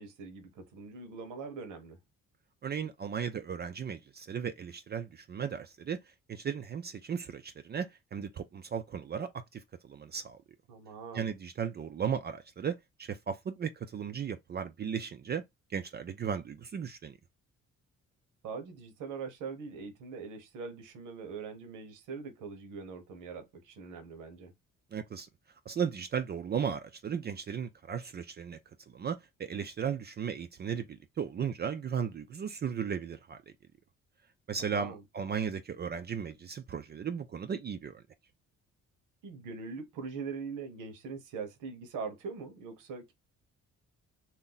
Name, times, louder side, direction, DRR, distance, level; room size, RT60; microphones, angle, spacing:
voice 1, 0.0-2.0 10.7-11.3 18.4-24.5 34.6-35.0 39.2-43.1, right 5 dB, 90° right, 1.0 m, -42 dB
voice 2, 2.6-6.0 6.3-10.4 11.1-15.4 15.7-17.2 24.9-25.3 25.7-28.6 28.9-33.4 34.5-38.0, right 7 dB, 35° right, 0.4 m, -36 dB
2.6 x 2.1 x 3.8 m
cardioid pair, 90°, 30 cm